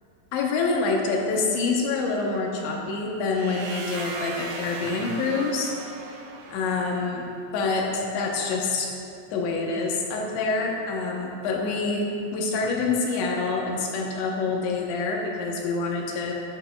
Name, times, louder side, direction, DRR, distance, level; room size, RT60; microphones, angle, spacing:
voice 1, 0.3-5.7 6.5-7.3 7.5-8.9 9.3-16.3, left 4 dB, 75° left, -1 dB, 3.0 m, -26 dB
sound 1, 3.3-7.2, right 4 dB, 85° right, 3.5 m, -37 dB
13.5 x 11.5 x 2.3 m, 2.6 s
omnidirectional pair, 5.7 m